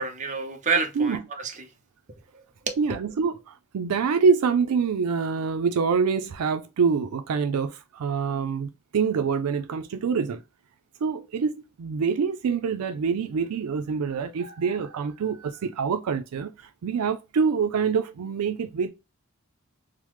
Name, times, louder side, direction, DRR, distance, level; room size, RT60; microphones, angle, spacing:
voice 1, 0.0-1.7 2.3-2.8, right 5 dB, 35° right, 0.6 m, -29 dB
voice 2, 2.8-10.4 11.0-18.9, right 5 dB, 85° right, 0.4 m, -25 dB
3.3 x 2.0 x 3.0 m
head